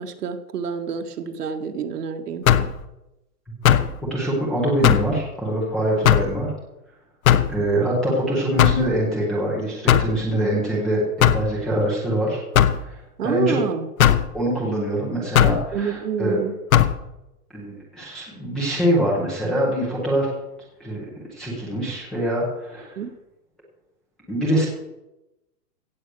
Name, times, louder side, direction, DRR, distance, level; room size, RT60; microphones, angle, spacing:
voice 1, 0.0-2.7 13.2-13.9 15.7-16.5 22.9-23.1, right 6 dB, 70° right, 7 dB, 1.7 m, -28 dB
sound 1, 2.5-2.8 3.6-3.9 4.8-5.1 6.0-6.3 7.2-7.5 8.6-8.9 9.9-10.2 11.2-11.5 12.5-12.8 14.0-14.3 15.3-15.6 16.7-16.9, left 10 dB, 60° left, 1.1 m, -16 dB
voice 2, 4.1-6.5 7.5-12.4 12.8-13.6 14.3-16.4 17.5-20.3 20.8-21.0 21.3-23.0 24.3-24.7, right 1 dB, ahead, -8 dB, 0.5 m, -24 dB
16.0 x 8.0 x 6.1 m, 0.94 s
hypercardioid pair, 170°, 48 cm